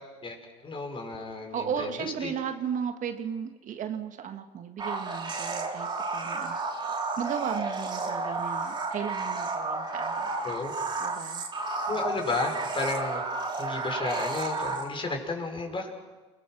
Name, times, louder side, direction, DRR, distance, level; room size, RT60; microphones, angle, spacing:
voice 1, 0.6-2.3 10.4-10.7 11.9-13.2 13.6-15.9, left 3 dB, 30° left, 3 dB, 5.7 m, -32 dB
voice 2, 1.5-6.6 7.2-10.6 11.0-11.5, right 7 dB, 50° right, 8 dB, 1.6 m, -35 dB
sound 1, 4.8-15.1, right 3 dB, 25° right, 3.5 m, -32 dB
28.5 x 20.0 x 6.1 m, 1.2 s
hypercardioid pair, 75°, 17 cm